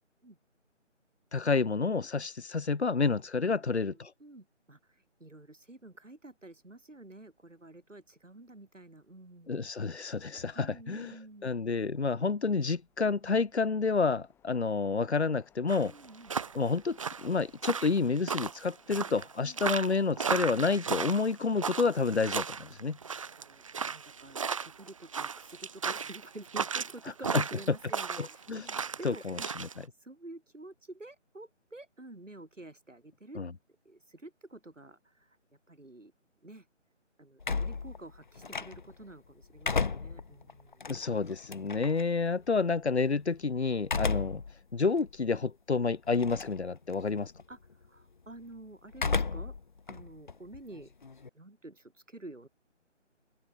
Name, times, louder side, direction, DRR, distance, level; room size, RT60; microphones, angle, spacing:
voice 1, 1.3-4.1 9.5-11.2 11.4-15.9 16.5-23.0 27.3-27.4 27.7-27.8 28.2-28.6 29.0-29.4 33.3-33.5 40.9-44.4 44.7-47.3, left 4 dB, 60° left, 1.4 m, -29 dB
voice 2, 3.4-9.5 10.5-11.5 15.9-16.3 19.4-19.6 23.4-29.5 29.9-33.4 33.8-35.4 35.7-36.1 36.4-36.7 37.2-40.9 47.5-49.5 49.9-50.9 51.3-52.5, right 2 dB, 80° right, 6.4 m, -50 dB
sound 1, 6.6-20.7, left 9 dB, 5° left, 6.9 m, -68 dB
sound 2, 15.7-29.7, right 6 dB, 25° right, 1.6 m, -35 dB
sound 3, 37.4-39.0 39.4-42.0 43.8-44.5 45.0-45.1 46.1-46.6 46.9-47.4 48.9-49.6 49.9-51.3, left 4 dB, 40° left, 1.2 m, -33 dB
open air
figure-of-eight pair, 155°, 37 cm